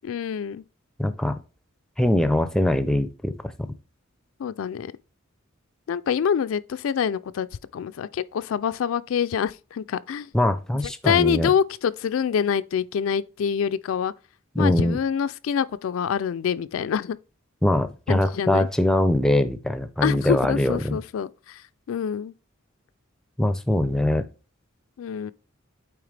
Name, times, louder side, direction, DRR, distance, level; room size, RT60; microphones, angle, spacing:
voice 1, 0.0-0.6 4.4-4.9 5.9-7.5 7.7-10.3 11.0-14.1 14.6-17.2 18.1-18.7 20.0-21.6 21.9-22.3 25.0-25.3, left 7 dB, 75° left, 0.3 m, -26 dB
voice 2, 1.0-1.4 2.0-3.7 10.3-11.5 14.6-15.0 17.6-21.0 23.4-24.2, left 1 dB, 5° left, 0.5 m, -22 dB
8.7 x 3.4 x 3.3 m
head